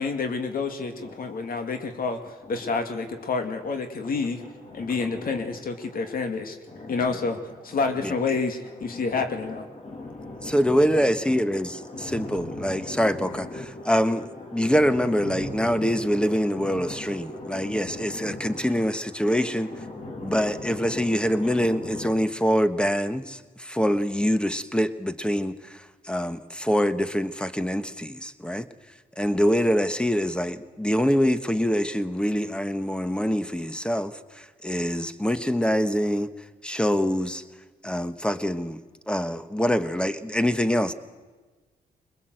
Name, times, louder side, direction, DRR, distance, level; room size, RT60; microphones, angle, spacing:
voice 1, 0.0-2.2 2.5-4.4 4.7-6.6 6.9-7.4 7.6-9.7, left 4 dB, 65° left, 6 dB, 2.2 m, -28 dB
voice 2, 1.0-1.8 2.4-2.8 4.1-6.3 6.7-8.1 8.8-22.1, left 2 dB, 40° left, 1 dB, 2.6 m, -39 dB
voice 3, 10.4-14.2 14.5-19.7 20.2-28.7 29.2-36.3 36.6-37.4 37.8-38.8 39.1-40.9, equal, 5° left, 11 dB, 1.3 m, -25 dB
21.0 x 20.5 x 7.9 m, 1.3 s
cardioid pair, 70°, 16 cm